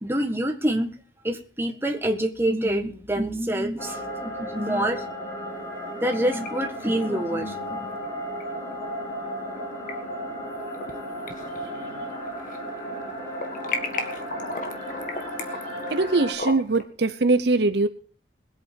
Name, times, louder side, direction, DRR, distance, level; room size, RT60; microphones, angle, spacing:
voice 1, 0.0-0.9 1.2-5.0 6.0-8.0, right 1 dB, 10° right, 4 dB, 1.6 m, -26 dB
sound 1, 3.8-16.3, equal, 20° left, 6.7 m, -34 dB
sound 2, 5.8-6.5 6.8-6.9 8.4-8.5 9.6-9.9 10.4-11.0 11.3-12.6 12.9-16.8, left 3 dB, 45° left, 1.7 m, -35 dB
voice 2, 15.9-17.9, right 3 dB, 60° right, 11 dB, 0.8 m, -22 dB
21.0 x 8.3 x 4.6 m, 0.41 s
head